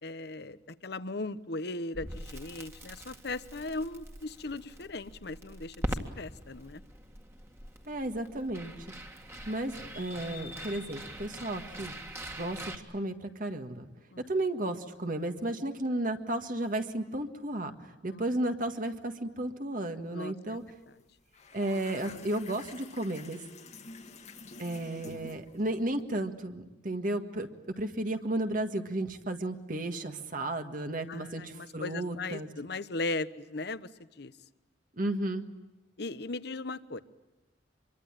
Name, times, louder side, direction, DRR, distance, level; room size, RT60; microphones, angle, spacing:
voice 1, 0.0-5.8 6.2-6.8 14.1-14.2 18.0-18.2 20.1-20.6 31.1-34.3 36.0-37.0, left 2 dB, 60° left, 14 dB, 1.0 m, -38 dB
Crackle, 1.9-12.8, equal, 15° right, 2.0 m, -42 dB
voice 2, 7.9-8.9 9.4-12.0 12.3-13.9 14.3-20.6 21.5-23.4 24.6-32.5 35.0-35.5, right 1 dB, 45° right, 6 dB, 1.7 m, -33 dB
sound 1, 20.5-20.7 21.0-26.0, left 3 dB, 40° left, 1.5 m, -49 dB
26.0 x 23.5 x 8.9 m, 1.0 s
head